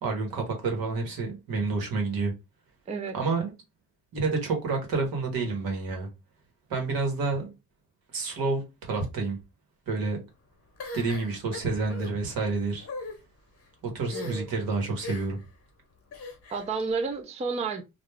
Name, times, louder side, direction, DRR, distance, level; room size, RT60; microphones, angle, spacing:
voice 1, 0.0-2.3 3.1-3.5 4.1-6.1 6.7-7.5 8.1-9.4 9.9-10.2 10.9-12.9 13.9-15.4, right 3 dB, 80° right, 1.2 m, -29 dB
sound 1, 10.8-12.1 12.8-13.2 14.1-14.6 15.0-15.4 16.1-16.7, left 3 dB, 40° left, 0.8 m, -39 dB
voice 2, 14.1-14.5 16.5-17.8, right 4 dB, 20° right, 0.4 m, -31 dB
2.4 x 2.2 x 3.2 m
cardioid pair, 120°, 35 cm